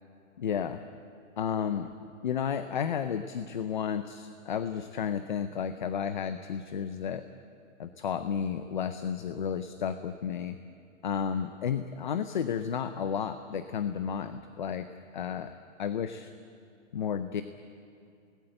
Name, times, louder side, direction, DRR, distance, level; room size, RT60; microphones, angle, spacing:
voice 1, 0.4-0.8 1.4-1.9 2.2-7.3 7.8-10.6 11.0-14.9 15.1-15.5 15.8-16.3 16.9-17.4, left 7 dB, 40° left, 11 dB, 0.6 m, -32 dB
27.5 x 19.0 x 7.8 m, 2.4 s
hypercardioid pair, 180°, 39 cm